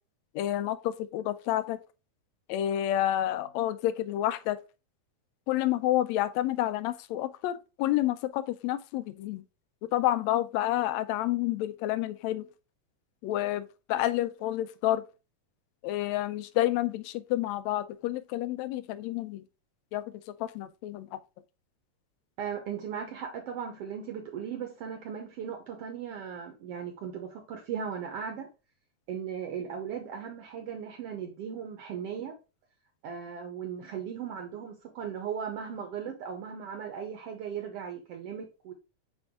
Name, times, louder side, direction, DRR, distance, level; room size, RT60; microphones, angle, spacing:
voice 1, 0.3-1.8 2.5-4.6 5.5-9.4 9.8-12.5 13.2-15.0 15.8-19.4 19.9-21.2, left 13 dB, 80° left, 1.7 m, -29 dB
voice 2, 22.4-28.5 29.1-32.3 33.0-38.7, right 7 dB, 70° right, 1.6 m, -37 dB
6.2 x 4.5 x 3.6 m
omnidirectional pair, 3.4 m